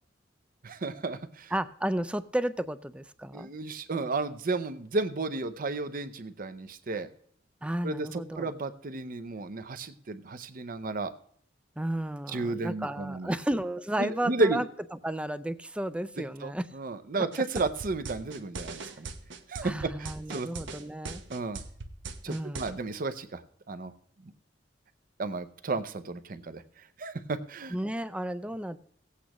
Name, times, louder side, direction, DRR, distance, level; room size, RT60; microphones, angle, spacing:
voice 1, 0.6-1.5 3.3-7.1 7.8-11.1 12.3-13.3 14.0-14.6 16.4-19.1 19.5-20.5 21.3-21.6 22.2-23.4 23.7-23.9 24.2-24.3 25.2-26.6 27.0-27.8, right 3 dB, 50° right, 11 dB, 0.6 m, -33 dB
voice 2, 1.5-3.5 7.6-8.5 11.8-14.7 15.0-16.7 17.2-17.3 18.8-19.0 19.6-21.2 22.3-22.8 27.7-28.8, right 1 dB, 5° right, 14 dB, 0.4 m, -33 dB
sound 1, 17.3-22.7, right 4 dB, 75° right, 0.9 m, -39 dB
17.0 x 8.4 x 3.0 m, 0.63 s
head